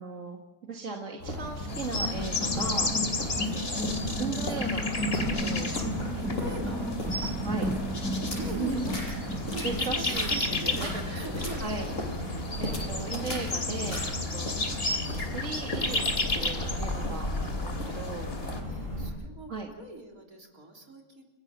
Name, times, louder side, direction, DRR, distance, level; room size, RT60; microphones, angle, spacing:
voice 1, 0.0-2.9 3.4-5.7 6.1-6.7 7.4-7.6 8.4-8.9 9.6-10.9 11.6-11.9 12.6-14.5 15.3-18.3 19.5-19.7, right 4 dB, 55° right, 1 dB, 2.3 m, -37 dB
sound 1, 1.2-19.1, left 1 dB, 60° left, 6.5 m, -35 dB
sound 2, 1.6-11.6, equal, ahead, 3.8 m, -35 dB
sound 3, 1.7-18.6, left 2 dB, 40° left, 2.9 m, -34 dB
voice 2, 6.2-6.9 7.2-7.3 8.4-9.0 9.3-12.7 18.6-19.5 19.8-21.2, right 2 dB, 70° right, 1 dB, 4.1 m, -42 dB
29.5 x 15.5 x 7.3 m, 1.1 s
omnidirectional pair, 1.5 m